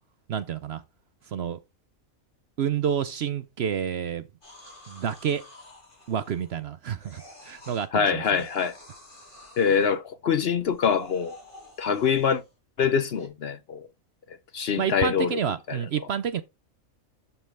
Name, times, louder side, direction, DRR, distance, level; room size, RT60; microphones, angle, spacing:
voice 1, 0.3-0.8 1.3-1.6 2.6-4.2 4.9-5.4 6.1-8.5 14.8-16.4, right 8 dB, 60° right, 0.7 m, -29 dB
sound 1, 4.4-6.6 7.0-7.9 8.3-9.9 10.6-12.5 13.2-13.3, left 1 dB, 35° left, 4.1 m, -49 dB
voice 2, 7.9-8.7 9.6-11.4 11.8-12.4 12.8-13.8 14.5-15.4 15.7-15.8, left 6 dB, 55° left, 0.8 m, -24 dB
12.0 x 5.7 x 3.3 m
omnidirectional pair, 1.4 m